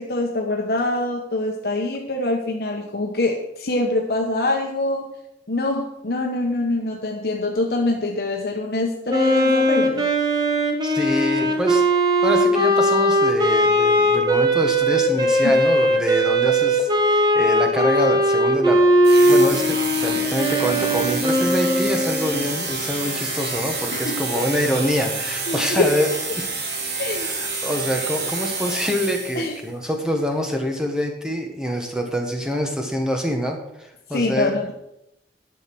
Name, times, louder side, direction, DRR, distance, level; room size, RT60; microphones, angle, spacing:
voice 1, 0.0-5.1 5.5-10.1 15.4-15.5 23.9-24.2 25.5-25.9 27.0-27.3 29.4-29.5 34.1-34.7, left 2 dB, 60° left, 1 dB, 1.0 m, -24 dB
Wind instrument woodwind instrument, 9.1-22.5, equal, 25° right, 1.3 m, -19 dB
voice 2, 10.8-11.9 12.2-18.8 19.3-26.1 26.4-26.5 27.2-34.6, left 1 dB, 5° right, 2 dB, 1.4 m, -25 dB
sound 1, 19.0-29.6, right 3 dB, 65° right, 2.0 m, -28 dB
11.0 x 6.5 x 6.2 m, 0.84 s
head